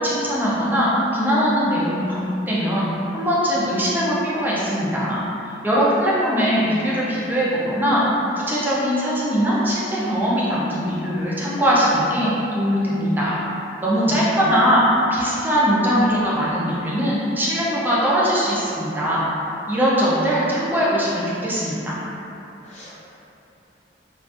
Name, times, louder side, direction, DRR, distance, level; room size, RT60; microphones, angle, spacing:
voice 1, 0.0-5.2 5.6-8.0 8.3-13.4 13.8-14.8 15.1-19.3 19.7-22.0, equal, 10° right, -8 dB, 0.4 m, -21 dB
voice 2, 14.0-14.5 22.6-23.0, equal, 40° left, -8 dB, 0.5 m, -35 dB
2.4 x 2.4 x 2.4 m, 2.9 s
head